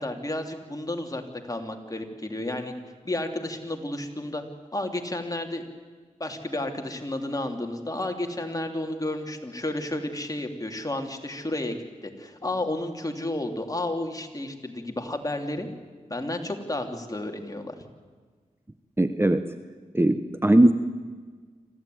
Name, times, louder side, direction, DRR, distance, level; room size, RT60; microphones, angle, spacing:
voice 1, 0.0-2.7 3.0-4.4 4.7-5.7 6.2-15.7 16.1-17.7, left 1 dB, 25° left, 4 dB, 3.2 m, -32 dB
voice 2, 19.0-19.6 19.9-20.7, right 1 dB, 15° right, 10 dB, 1.0 m, -20 dB
26.0 x 15.0 x 9.5 m, 1.5 s
cardioid pair, 55°, 14 cm